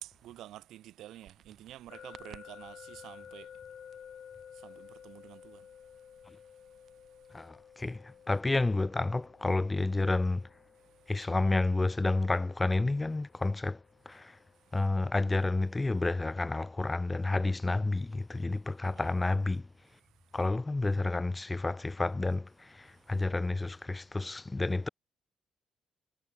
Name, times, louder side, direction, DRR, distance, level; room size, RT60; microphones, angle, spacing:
voice 1, 0.0-3.5 4.6-5.6 18.8-19.1, right 13 dB, 85° right, 1.5 m, -49 dB
sound 1, 1.2-8.8, right 9 dB, 65° right, 2.4 m, -61 dB
sound 2, 1.9-14.8, left 8 dB, 60° left, 2.5 m, -53 dB
voice 2, 7.3-10.5 11.1-13.8 14.1-14.4 14.7-19.7 20.3-24.9, left 2 dB, 20° left, 0.6 m, -30 dB
cardioid pair, 90°, 0 cm